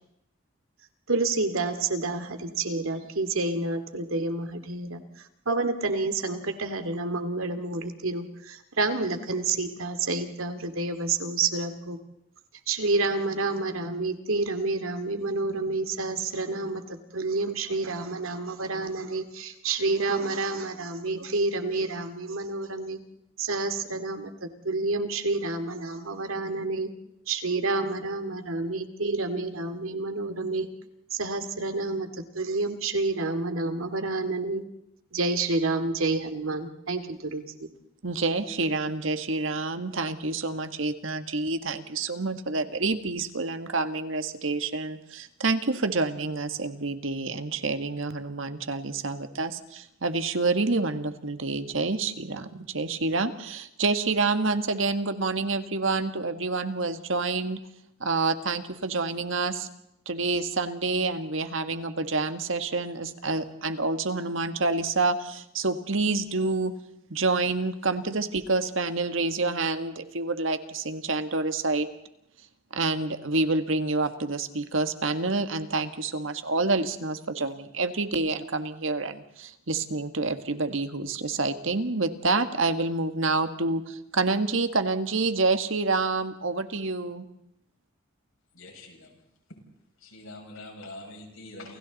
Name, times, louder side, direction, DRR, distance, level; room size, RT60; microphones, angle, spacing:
voice 1, 1.1-12.0 12.7-23.0 23.4-26.9 27.3-30.7 31.1-34.6 35.1-37.7, right 3 dB, 90° right, 8 dB, 2.3 m, -29 dB
voice 2, 38.0-57.6 58.0-59.7 60.0-66.7 67.1-71.9 72.7-87.3, right 3 dB, 75° right, 9 dB, 1.6 m, -28 dB
voice 3, 88.5-89.2 89.5-89.6 90.0-91.8, left 2 dB, 85° left, 1 dB, 6.8 m, -44 dB
30.0 x 28.5 x 4.1 m, 0.79 s
head